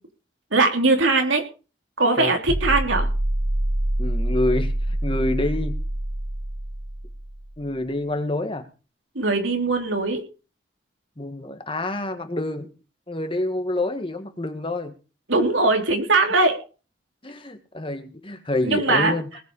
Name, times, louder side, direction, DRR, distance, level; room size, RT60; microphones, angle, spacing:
voice 1, 0.5-1.4 2.0-3.1 9.1-10.2 15.3-16.6 18.7-19.1, right 3 dB, 90° right, 4 dB, 3.4 m, -20 dB
sound 1, 2.5-7.5, right 1 dB, 55° right, 1.7 m, -26 dB
voice 2, 4.0-5.8 7.6-8.7 11.2-12.7 13.1-14.9 17.2-19.3, left 2 dB, 25° left, 8 dB, 1.8 m, -27 dB
19.5 x 7.6 x 5.5 m, 0.34 s
head